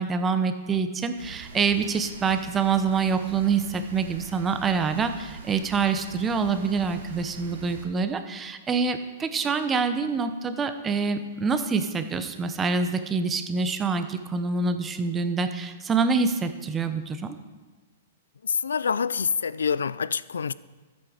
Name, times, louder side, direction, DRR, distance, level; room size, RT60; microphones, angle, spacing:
voice 1, 0.0-17.4, right 5 dB, 20° right, 9 dB, 0.8 m, -26 dB
Rain, 1.2-7.8, right 3 dB, 80° right, 2.5 m, -44 dB
voice 2, 18.4-20.5, left 6 dB, 85° left, 19 dB, 0.3 m, -26 dB
13.0 x 8.0 x 5.0 m, 1.3 s
hypercardioid pair, 125°, 0 cm